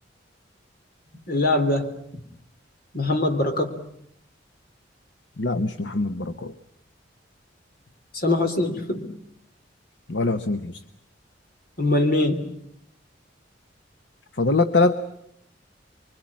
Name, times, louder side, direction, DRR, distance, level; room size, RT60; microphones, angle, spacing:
voice 1, 1.3-2.0 2.9-3.8 8.1-9.1 11.8-12.5, left 2 dB, 55° left, 7 dB, 3.4 m, -22 dB
voice 2, 5.4-6.5 10.1-10.8 14.4-14.9, left 3 dB, 70° left, 10 dB, 1.0 m, -23 dB
26.0 x 23.5 x 8.7 m, 0.73 s
head